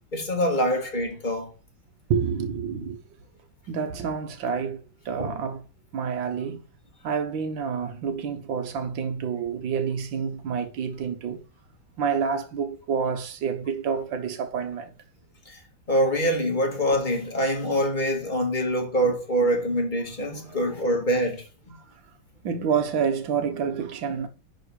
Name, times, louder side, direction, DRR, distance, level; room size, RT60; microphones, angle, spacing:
voice 1, 0.1-1.5 5.2-5.3 15.9-21.7, equal, 25° left, 2.0 m, -25 dB
voice 2, 2.1-3.0 3.7-5.6 5.9-6.6 7.0-11.4 12.0-14.9 20.3-20.6 22.4-24.3, right 6 dB, 70° right, 1.9 m, -28 dB
10.5 x 3.9 x 4.7 m
omnidirectional pair, 2.2 m